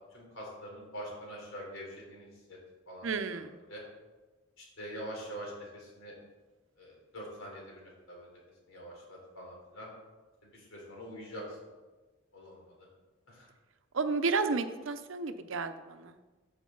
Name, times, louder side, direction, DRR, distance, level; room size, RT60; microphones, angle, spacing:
voice 1, 0.1-2.6 2.9-3.4 3.7-3.8 4.6-6.1 6.8-8.3 8.7-9.9 10.4-11.6 12.3-12.9 13.3-13.5, equal, 80° left, -2 dB, 3.5 m, -45 dB
voice 2, 3.0-3.6 13.9-16.2, right 4 dB, 70° right, 10 dB, 0.7 m, -32 dB
14.0 x 6.0 x 3.9 m, 1.3 s
head